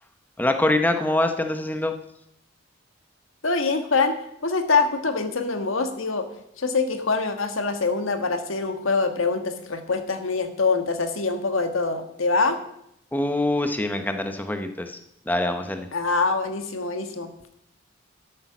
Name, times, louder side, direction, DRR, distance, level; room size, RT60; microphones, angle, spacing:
voice 1, 0.4-2.0 13.1-15.0 15.3-15.9, left 1 dB, 10° left, 6 dB, 0.7 m, -24 dB
voice 2, 3.4-4.2 4.4-6.3 6.6-12.6 15.9-17.3, left 4 dB, 80° left, 7 dB, 1.5 m, -24 dB
12.0 x 8.6 x 6.0 m, 0.77 s
head